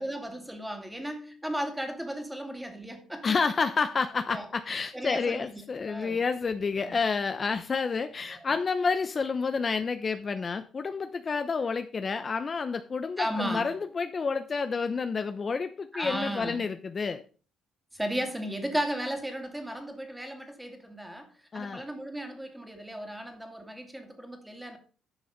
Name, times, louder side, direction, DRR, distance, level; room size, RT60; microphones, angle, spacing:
voice 1, 0.0-3.3 4.3-4.5 4.9-6.2 6.8-6.9 8.3-8.5 13.2-13.7 15.9-16.6 17.9-21.3 21.5-24.8, equal, 5° right, 2.6 m, -35 dB
voice 2, 3.2-17.2 21.5-21.8, left 5 dB, 40° left, 0.8 m, -29 dB
11.5 x 6.3 x 5.2 m
cardioid pair, 90°, 0 cm